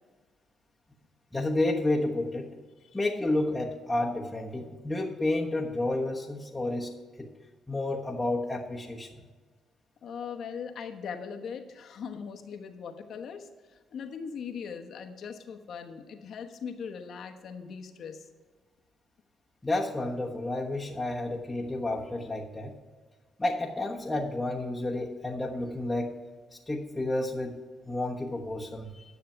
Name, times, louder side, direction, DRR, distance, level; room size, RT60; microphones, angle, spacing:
voice 1, 1.3-2.6 2.9-7.3 7.7-9.1 19.6-22.7 23.4-26.2 26.5-29.0, left 2 dB, 15° left, -4 dB, 1.2 m, -31 dB
voice 2, 10.0-18.3, left 6 dB, 65° left, 5 dB, 1.2 m, -40 dB
10.5 x 6.6 x 5.7 m, 1.4 s
supercardioid pair, 75°, 0 cm